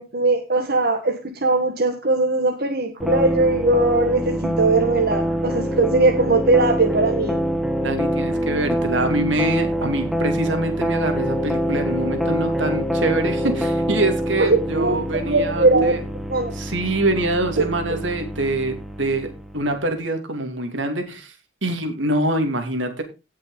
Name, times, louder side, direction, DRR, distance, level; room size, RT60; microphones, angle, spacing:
voice 1, 0.0-7.4 14.4-16.0 16.3-16.5 17.6-17.7, right 2 dB, 55° right, 3 dB, 1.7 m, -20 dB
sound 1, 3.0-19.7, equal, ahead, 1.3 m, -25 dB
voice 2, 7.8-16.0 16.5-21.3 21.6-23.0, right 2 dB, 80° right, 6 dB, 2.9 m, -25 dB
17.5 x 6.5 x 4.0 m, 0.27 s
head